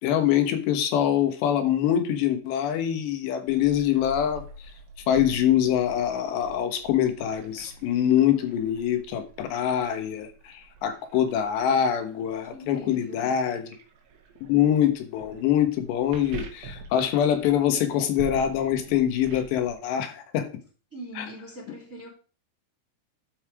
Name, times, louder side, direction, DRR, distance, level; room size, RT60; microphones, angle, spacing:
voice 1, 0.0-4.4 5.1-13.6 14.5-20.5 21.2-21.3, left 10 dB, 75° left, 3.3 m, -24 dB
sound 1, 3.5-19.8, right 4 dB, 85° right, 4.2 m, -45 dB
voice 2, 12.5-13.4 20.9-22.1, right 1 dB, 20° right, 3.1 m, -41 dB
12.5 x 5.5 x 4.9 m
omnidirectional pair, 5.2 m